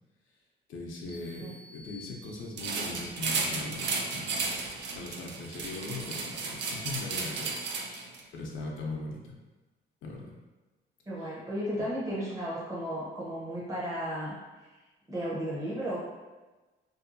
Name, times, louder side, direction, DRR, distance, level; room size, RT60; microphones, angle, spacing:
voice 1, 0.7-4.4 4.9-9.4 10.0-10.3, left 2 dB, 75° left, -2 dB, 0.5 m, -40 dB
sound 1, 1.1-2.9, left 2 dB, 30° left, 0.5 m, -52 dB
sound 2, 2.6-8.2, right 4 dB, 60° right, 0.4 m, -34 dB
voice 2, 11.1-14.7 15.1-16.0, equal, 15° right, -6 dB, 0.7 m, -34 dB
2.6 x 2.4 x 2.5 m, 1.2 s
cardioid pair, 90°, 20 cm